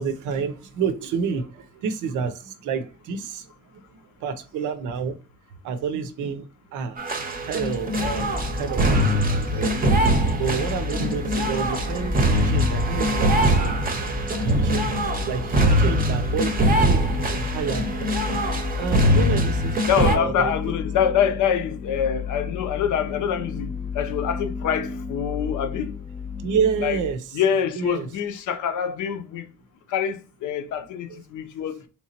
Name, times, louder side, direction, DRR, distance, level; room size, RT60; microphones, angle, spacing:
voice 1, 0.0-3.5 3.9-5.2 5.6-7.1 7.4-9.9 10.4-17.9 18.4-20.5 26.4-27.3 27.8-28.1 31.1-31.2, right 6 dB, 80° right, 0.6 m, -29 dB
sound 1, 7.0-20.2, equal, 30° right, 0.7 m, -22 dB
sound 2, 7.3-27.1, left 6 dB, 30° left, 0.5 m, -34 dB
voice 2, 19.1-19.4 19.9-25.9 26.8-27.0 27.3-29.5 29.9-31.8, left 8 dB, 75° left, 0.6 m, -25 dB
3.3 x 3.0 x 2.8 m
cardioid pair, 90°, 30 cm